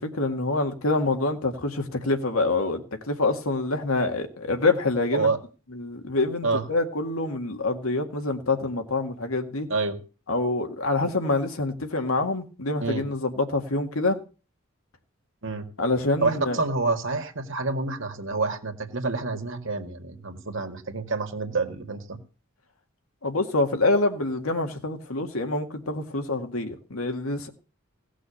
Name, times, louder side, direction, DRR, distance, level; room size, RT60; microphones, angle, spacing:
voice 1, 0.0-5.3 5.7-9.7 10.3-14.2 15.8-16.6 23.2-27.5, left 2 dB, 85° left, 2.0 m, -26 dB
voice 2, 16.2-22.2, right 3 dB, 60° right, 1.9 m, -28 dB
17.5 x 6.2 x 6.9 m
head